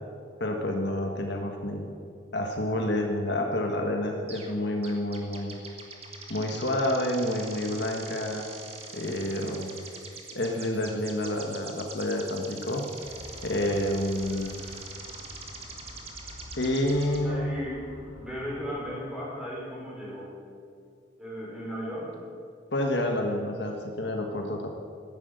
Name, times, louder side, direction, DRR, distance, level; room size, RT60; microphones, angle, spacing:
voice 1, 0.4-1.8 2.3-5.6 6.3-8.5 8.9-9.7 10.3-12.8 13.4-14.6 16.6-17.5 22.7-24.7, left 1 dB, 65° left, 2 dB, 1.5 m, -29 dB
sound 1, 4.3-4.5 4.8-17.2, right 4 dB, 30° right, 1.7 m, -43 dB
Motor vehicle (road) / Siren, 13.0-18.7, left 1 dB, 85° left, 1.9 m, -47 dB
voice 2, 17.2-17.9 18.2-20.3 21.2-22.2, equal, 5° right, -6 dB, 5.1 m, -36 dB
14.0 x 10.5 x 8.1 m, 2.3 s
head